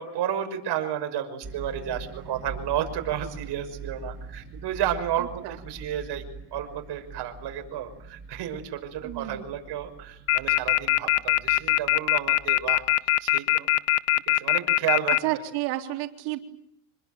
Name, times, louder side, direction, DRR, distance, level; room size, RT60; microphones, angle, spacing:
voice 1, 0.0-12.8 13.2-13.7 14.3-15.2, right 10 dB, 55° right, 6 dB, 6.1 m, -32 dB
sound 1, 1.4-13.0, right 4 dB, 30° right, 6.2 m, -43 dB
voice 2, 5.2-5.6 9.0-9.5 15.2-16.4, right 16 dB, 90° right, 3 dB, 3.9 m, -31 dB
sound 2, 10.3-15.2, left 17 dB, 70° left, 1.0 m, -21 dB
27.0 x 22.0 x 9.3 m, 0.73 s
cardioid pair, 130°, 48 cm